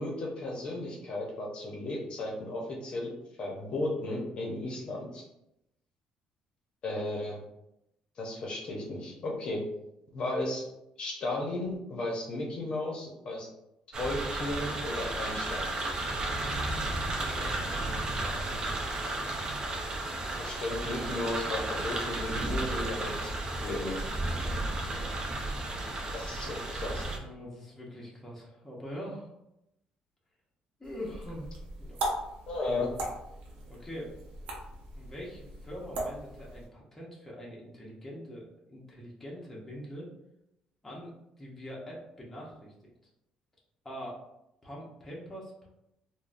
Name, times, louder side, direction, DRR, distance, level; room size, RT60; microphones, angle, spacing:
voice 1, 0.0-3.1 3.4-5.2 6.8-7.4 8.2-9.6 10.1-10.6 11.0-13.5 14.0-15.7 20.4-24.0 26.1-27.0 32.5-32.9, left 2 dB, 45° left, -1 dB, 0.7 m, -34 dB
sound 1, 13.9-27.2, right 2 dB, 35° right, 0.5 m, -33 dB
voice 2, 17.2-18.7 24.2-25.2 27.2-29.3 30.8-31.5 31.8-32.1 33.7-34.1 34.9-40.1 40.8-42.9 43.8-44.2 44.6-45.7, equal, 10° left, -4 dB, 0.7 m, -44 dB
sound 2, 30.8-36.7, right 1 dB, 65° right, 0.7 m, -39 dB
3.5 x 2.1 x 2.5 m, 0.85 s
cardioid pair, 140°, 2 cm